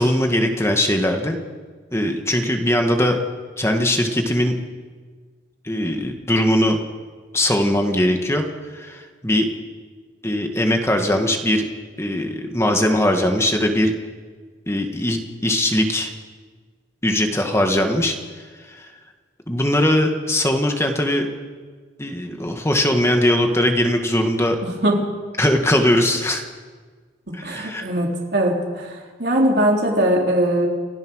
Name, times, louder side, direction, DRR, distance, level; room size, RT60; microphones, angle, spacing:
voice 1, 0.0-1.4 1.9-3.2 3.6-4.6 5.6-6.8 7.3-8.5 8.7-9.5 10.2-11.7 12.0-13.9 14.7-16.1 17.0-18.2 18.8-18.9 19.5-21.3 22.0-24.6 25.4-26.4 27.3-27.9, left 1 dB, 15° left, 4 dB, 1.8 m, -20 dB
voice 2, 24.6-25.0 27.3-28.9 29.2-30.7, right 1 dB, 55° right, -1 dB, 3.7 m, -20 dB
30.0 x 15.0 x 6.5 m, 1.5 s
head